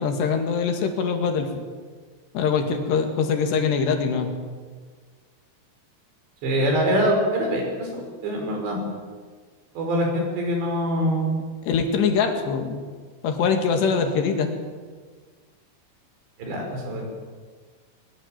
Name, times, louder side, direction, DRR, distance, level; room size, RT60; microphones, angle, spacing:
voice 1, 0.0-1.6 2.3-4.3 11.7-12.8 13.2-14.5, left 5 dB, 80° left, 5 dB, 4.3 m, -23 dB
voice 2, 6.4-8.8 9.8-11.3 16.4-17.1, equal, 85° right, 2 dB, 7.3 m, -24 dB
21.5 x 21.0 x 7.7 m, 1.5 s
omnidirectional pair, 4.9 m